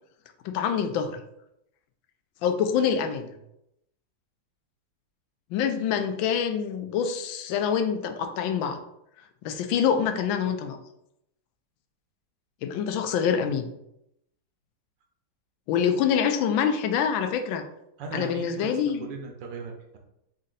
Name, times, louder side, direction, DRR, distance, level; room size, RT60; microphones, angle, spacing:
voice 1, 0.4-1.2 2.4-3.3 5.5-8.8 9.4-10.8 12.6-13.7 15.7-17.6 18.1-19.1, left 7 dB, 90° left, 7 dB, 1.3 m, -26 dB
voice 2, 18.0-20.0, right 4 dB, 75° right, 2 dB, 1.4 m, -38 dB
4.2 x 2.7 x 3.9 m, 0.80 s
omnidirectional pair, 2.1 m